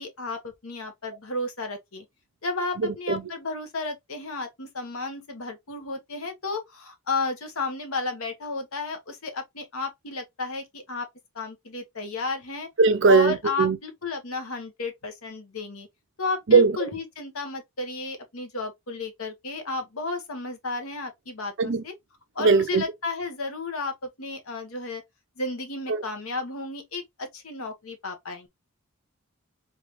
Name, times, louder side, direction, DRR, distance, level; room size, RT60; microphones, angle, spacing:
voice 1, 0.0-2.0 2.4-11.1 11.3-12.7 13.1-15.9 16.2-21.9 22.3-25.0 25.4-28.5, left 3 dB, 80° left, 1.1 m, -33 dB
voice 2, 2.8-3.2 12.8-13.8 16.5-16.9 21.6-21.8 22.4-22.8 25.9-26.0, right 4 dB, 60° right, 0.6 m, -20 dB
3.9 x 3.3 x 3.0 m
head